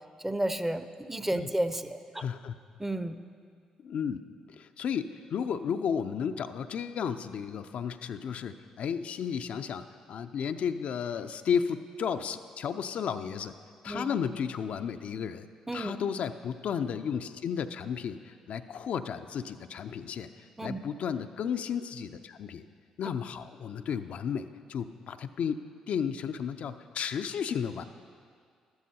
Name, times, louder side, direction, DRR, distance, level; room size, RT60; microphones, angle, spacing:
voice 1, 0.2-2.2 2.8-3.2 13.9-14.1 15.7-16.0 20.6-20.8, right 1 dB, 10° right, 10 dB, 0.6 m, -32 dB
voice 2, 2.1-2.6 3.8-4.2 4.5-13.5 13.8-15.5 15.7-22.6 23.0-25.6 25.9-27.8, left 7 dB, 60° left, 8 dB, 0.4 m, -33 dB
12.5 x 12.5 x 2.8 m, 2.1 s
hypercardioid pair, 45°, 2 cm